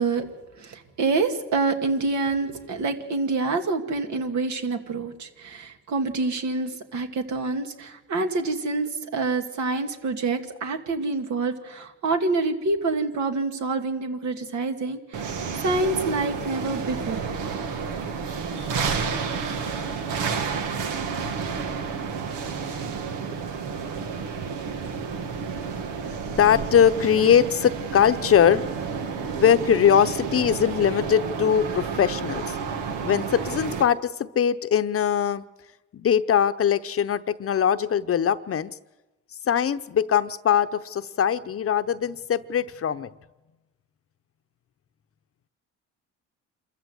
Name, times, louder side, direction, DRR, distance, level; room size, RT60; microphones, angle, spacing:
voice 1, 0.0-17.2, right 3 dB, 70° right, 5 dB, 2.3 m, -27 dB
sound 1, 15.1-33.8, right 5 dB, 90° right, 1.8 m, -30 dB
voice 2, 20.7-21.2 26.3-28.6 29.4-32.6 33.0-35.4 35.9-38.8 39.4-43.1, left 8 dB, 50° left, 12 dB, 0.8 m, -21 dB
27.0 x 14.5 x 8.0 m, 1.1 s
cardioid pair, 90°, 30 cm